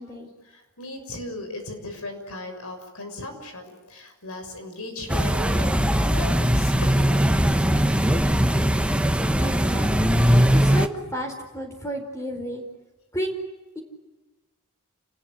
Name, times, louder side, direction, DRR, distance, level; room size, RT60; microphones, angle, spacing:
voice 1, 0.5-7.2, left 2 dB, 70° left, 6 dB, 6.4 m, -37 dB
sound 1, 5.1-10.9, equal, 5° right, 1.3 m, -20 dB
voice 2, 9.4-12.6 13.1-13.3 13.7-13.8, equal, 15° left, 4 dB, 4.4 m, -32 dB
30.0 x 20.5 x 9.4 m, 1.1 s
head